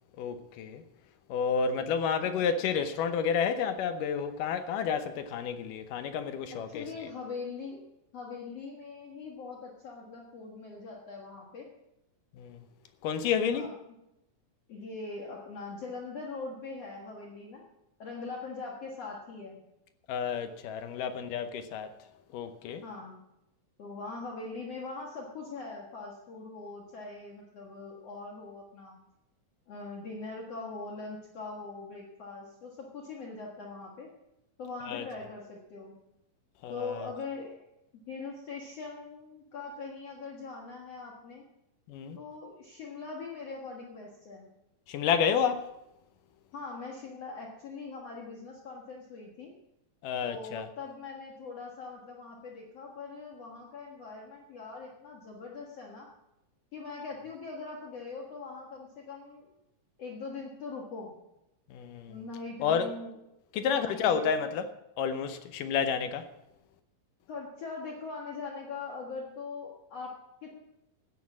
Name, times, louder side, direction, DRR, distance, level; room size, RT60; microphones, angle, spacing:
voice 1, 0.2-0.8 1.3-6.9 12.4-12.6 13.0-13.7 20.1-21.9 22.3-22.8 34.9-35.0 36.6-37.1 41.9-42.2 44.9-45.7 50.0-50.7 61.7-62.2 62.6-62.9 63.5-64.7 65.0-66.3, left 7 dB, 75° left, 2.3 m, -30 dB
voice 2, 6.5-7.8 8.1-11.7 13.4-13.7 14.7-17.6 18.0-19.6 22.8-23.2 23.8-29.0 29.7-34.1 34.6-35.9 36.7-37.6 38.1-41.5 42.2-44.5 46.5-49.5 50.2-56.1 56.7-59.5 60.0-61.1 62.1-63.1 63.6-64.5 67.3-70.6, left 4 dB, 50° left, 2.3 m, -42 dB
14.0 x 9.5 x 7.4 m
omnidirectional pair, 4.1 m